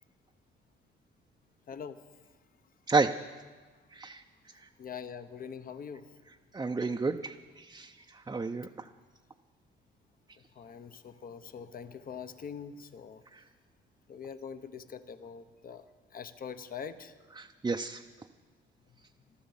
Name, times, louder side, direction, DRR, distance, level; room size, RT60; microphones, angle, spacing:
voice 1, 1.7-2.0 4.5-6.2 10.4-13.2 14.1-17.2 18.9-19.0, left 7 dB, 45° left, 11 dB, 1.0 m, -44 dB
voice 2, 3.9-4.2 6.5-7.9 8.3-8.9 13.3-13.4 17.4-18.0, right 3 dB, 20° right, 4 dB, 0.6 m, -31 dB
14.0 x 13.0 x 7.3 m, 1.4 s
cardioid pair, 90°, 20 cm